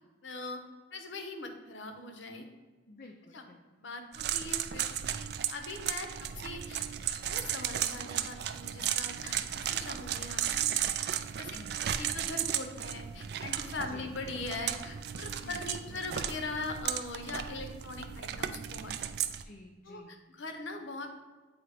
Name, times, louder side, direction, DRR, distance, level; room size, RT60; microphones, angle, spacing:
voice 1, 0.2-0.6 0.9-2.5 3.3-3.4 3.8-6.9 7.3-10.4 10.7-11.6 11.8-18.9 19.9-21.3, left 3 dB, 75° left, 5 dB, 0.8 m, -41 dB
voice 2, 2.9-3.8 9.1-9.5 11.5-11.9 13.8-14.2 15.4-16.1 19.4-20.2, left 2 dB, 45° left, 2 dB, 0.4 m, -52 dB
sound 1, 4.1-19.4, right 10 dB, 55° right, 0.3 m, -35 dB
8.1 x 2.9 x 4.8 m, 1.3 s
head